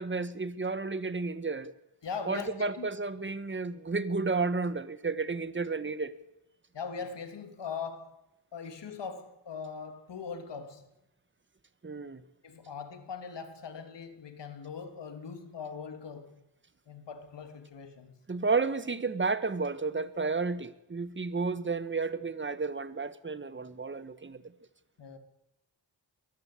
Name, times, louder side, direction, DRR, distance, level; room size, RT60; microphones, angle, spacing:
voice 1, 0.0-1.7 2.3-6.1 11.8-12.2 18.3-24.4, right 4 dB, 25° right, 1.5 m, -32 dB
voice 2, 2.0-2.9 6.7-8.2 8.5-10.9 12.4-16.4 16.9-18.1 25.0-25.2, left 5 dB, 80° left, 3.0 m, -41 dB
22.5 x 14.0 x 8.6 m
cardioid pair, 80°, 42 cm